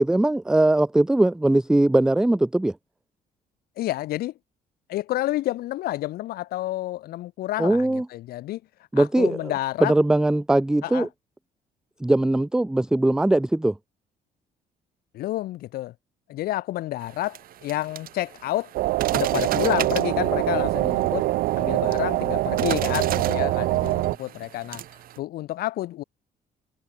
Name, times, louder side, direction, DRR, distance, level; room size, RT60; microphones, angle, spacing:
voice 1, 0.0-2.7 7.6-8.1 8.9-9.5 9.8-11.1 12.0-13.7, right 1 dB, 5° right, 0.3 m, -20 dB
voice 2, 3.8-4.3 4.9-8.6 9.0-9.9 10.8-11.1 15.1-15.9 16.3-18.7 19.1-21.3 21.6-24.8 25.2-26.0, left 15 dB, 80° left, 2.3 m, -29 dB
sound 1, 17.0-25.2, right 12 dB, 70° right, 7.1 m, -36 dB
sound 2, 18.7-24.2, right 18 dB, 85° right, 0.5 m, -24 dB
cardioid pair, 115°, 16 cm